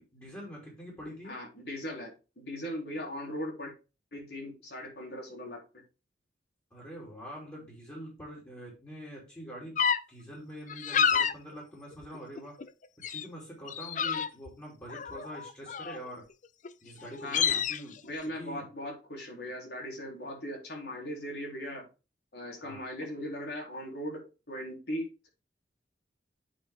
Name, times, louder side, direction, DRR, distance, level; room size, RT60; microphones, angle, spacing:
voice 1, 0.0-1.4 6.7-9.8 10.1-12.6 13.1-16.2 16.8-18.0 18.2-18.7 22.6-22.8, equal, 15° left, -6 dB, 3.4 m, -44 dB
voice 2, 1.2-3.7 4.1-5.8 17.2-17.6 18.0-21.9 22.3-25.3, equal, 65° left, -1 dB, 3.8 m, -39 dB
sound 1, 9.8-10.0 10.7-11.3 11.9-12.7 13.0-13.3 13.7-14.5 14.9-16.1 16.6-16.7 17.0-17.8, left 7 dB, 45° left, 0.5 m, -29 dB
8.7 x 5.3 x 3.6 m, 0.30 s
head